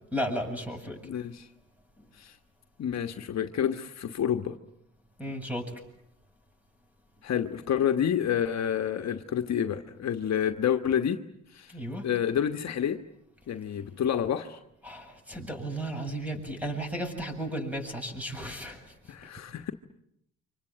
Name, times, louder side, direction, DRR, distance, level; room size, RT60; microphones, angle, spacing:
voice 1, 0.1-1.0 5.2-5.7 11.7-12.1 14.8-18.8, equal, 5° right, 4 dB, 7.6 m, -34 dB
voice 2, 1.0-1.5 2.2-2.3 2.8-4.6 7.2-11.2 11.5-11.7 12.0-13.0 13.5-14.6 19.1-19.7, left 9 dB, 60° left, 6 dB, 1.4 m, -28 dB
29.0 x 26.0 x 7.6 m, 0.77 s
cardioid pair, 90°, 30 cm